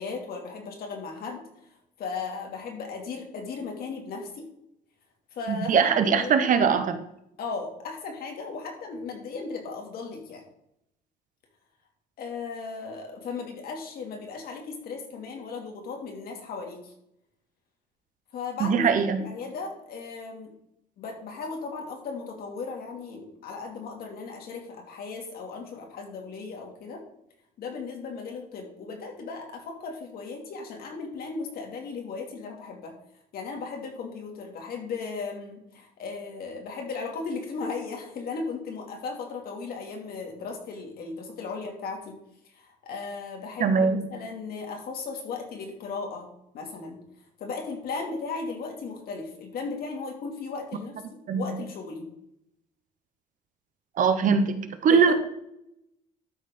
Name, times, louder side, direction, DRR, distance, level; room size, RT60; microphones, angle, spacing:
voice 1, 0.0-1.5 2.0-4.5 5.3-6.5 7.4-10.4 12.2-16.9 18.3-18.9 19.2-20.5 21.0-27.0 27.6-33.0 33.3-42.2 42.5-46.3 46.5-47.0 47.4-52.1 54.9-55.0, left 4 dB, 65° left, 2 dB, 2.5 m, -36 dB
voice 2, 5.5-7.0 18.6-19.2 43.6-44.1 51.3-51.4 54.0-55.1, right 6 dB, 50° right, 9 dB, 1.0 m, -22 dB
12.5 x 4.2 x 5.3 m, 0.78 s
cardioid pair, 110°, 17 cm